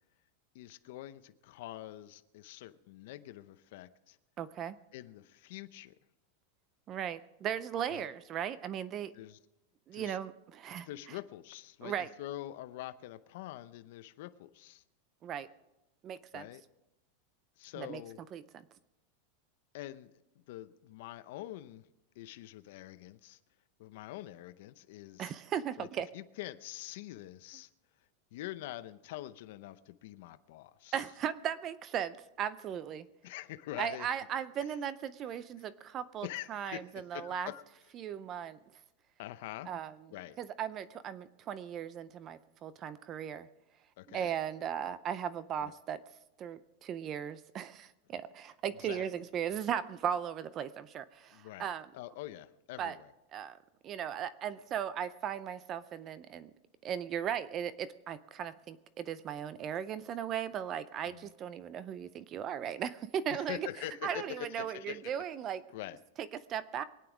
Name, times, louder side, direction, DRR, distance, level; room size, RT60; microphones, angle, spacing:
voice 1, 0.5-4.2 4.9-5.9 7.9-8.1 9.1-9.4 9.9-10.2 10.8-14.8 16.3-16.6 17.6-18.2 19.7-20.1 20.5-21.9 22.2-23.4 23.8-25.3 25.8-25.9 26.1-27.7 28.3-30.9 33.2-34.1 36.2-37.6 39.2-39.7 40.1-40.4 44.0-44.3 45.6-45.7 48.8-49.0 51.3-51.7 51.9-53.1 61.1-61.3 63.3-65.0 65.7-66.0, left 15 dB, 60° left, 11 dB, 0.7 m, -45 dB
voice 2, 4.4-4.7 6.9-9.1 9.9-11.2 11.8-12.1 15.2-15.5 16.0-16.5 17.8-18.0 18.3-18.7 25.2-26.1 30.9-33.1 33.8-37.5 37.9-38.6 39.7-40.0 40.4-43.5 44.1-46.0 46.4-51.9 52.8-53.0 53.3-53.6 53.8-56.5 56.8-63.7 64.0-65.6 66.2-66.8, right 9 dB, 25° right, 15 dB, 0.5 m, -37 dB
23.5 x 9.2 x 4.9 m, 0.95 s
supercardioid pair, 165°, 0 cm